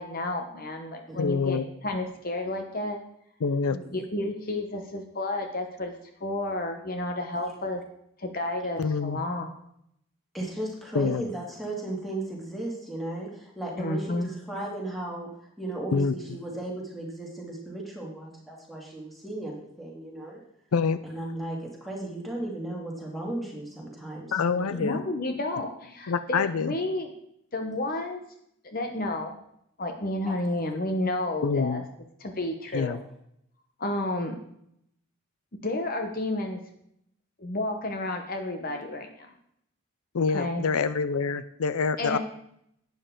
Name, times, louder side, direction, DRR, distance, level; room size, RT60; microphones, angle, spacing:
voice 1, 0.0-3.0 3.9-5.9 6.2-7.8 8.2-9.5 13.8-14.3 24.8-27.1 27.5-28.2 28.6-29.4 29.8-31.8 32.2-33.0 33.8-34.4 35.6-36.6 37.4-39.3 40.3-40.6 42.0-42.2, left 2 dB, 40° left, 4 dB, 0.9 m, -31 dB
voice 2, 1.2-1.6 3.4-3.8 8.8-9.2 10.9-11.2 15.9-16.1 20.7-21.0 24.3-25.0 26.1-26.7 31.4-31.8 32.7-33.0 40.1-42.2, left 5 dB, 80° left, 13 dB, 0.5 m, -26 dB
voice 3, 3.7-4.3 7.3-7.5 10.3-15.3 15.6-20.4 21.0-24.9 30.2-30.3, right 1 dB, ahead, -3 dB, 2.4 m, -36 dB
11.5 x 9.0 x 3.8 m, 0.73 s
head